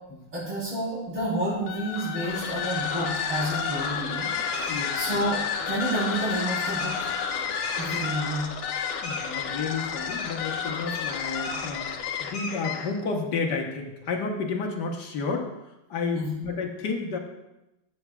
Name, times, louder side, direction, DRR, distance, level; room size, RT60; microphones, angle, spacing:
voice 1, 0.3-7.1 7.8-8.5 10.9-11.0 16.1-16.3, right 1 dB, 80° right, -12 dB, 5.0 m, -30 dB
sound 1, 1.6-13.0, left 6 dB, 75° left, 1.6 m, -30 dB
voice 2, 4.6-5.2 9.0-11.9 12.2-17.2, left 4 dB, 60° left, 2 dB, 1.5 m, -31 dB
14.5 x 8.2 x 2.4 m, 0.94 s
omnidirectional pair, 2.3 m